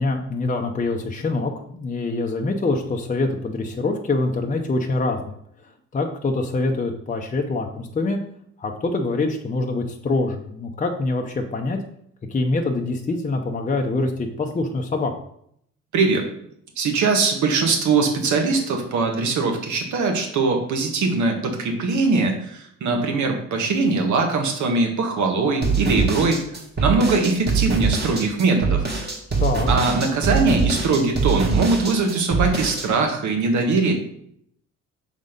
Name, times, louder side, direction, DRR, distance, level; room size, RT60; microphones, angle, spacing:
voice 1, 0.0-5.4 5.9-8.2 8.6-11.8 12.3-15.1 29.4-29.7, left 3 dB, 25° left, 2 dB, 0.8 m, -24 dB
voice 2, 15.9-16.3 16.8-26.4 26.8-28.8 29.7-33.9, right 3 dB, 75° right, 3 dB, 1.6 m, -21 dB
sound 1, 25.6-32.9, right 5 dB, 35° right, 1.9 m, -23 dB
6.1 x 4.1 x 5.1 m, 0.69 s
cardioid pair, 90°, 30 cm